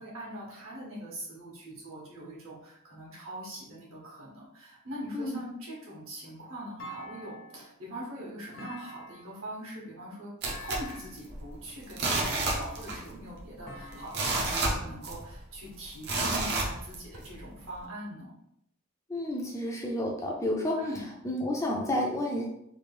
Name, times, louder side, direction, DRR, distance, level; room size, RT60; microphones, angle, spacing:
voice 1, 0.0-10.3 10.6-18.3 20.8-21.0, right 1 dB, 70° right, -5 dB, 1.3 m, -42 dB
Thump thud, 6.8-7.7 8.5-9.5 10.4-11.2 12.3-13.0 13.7-14.7, left 1 dB, 60° left, 0.8 m, -46 dB
sound 1, 10.4-11.5 11.9-13.1 13.4-13.5 13.9-15.4 16.0-17.3 17.8-17.9, right 2 dB, 50° right, 0.7 m, -30 dB
voice 2, 19.1-20.8 21.2-22.5, left 1 dB, 15° left, -1 dB, 0.4 m, -30 dB
3.2 x 2.4 x 3.4 m, 0.74 s
head